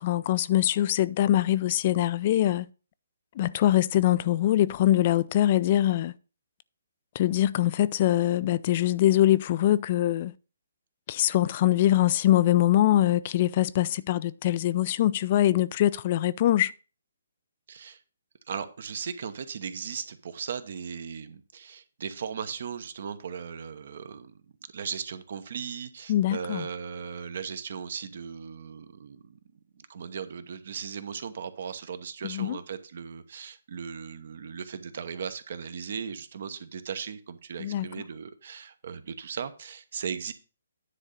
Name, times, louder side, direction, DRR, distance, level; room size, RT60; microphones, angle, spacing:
voice 1, 0.0-2.7 3.4-6.1 7.2-10.3 11.1-16.7 26.1-26.7 32.2-32.6 37.6-37.9, left 13 dB, 40° left, 0.3 m, -23 dB
voice 2, 17.7-18.0 18.5-24.4 24.7-29.4 29.7-40.3, right 6 dB, 60° right, 1.0 m, -37 dB
9.9 x 3.7 x 6.6 m
hypercardioid pair, 145°, 0 cm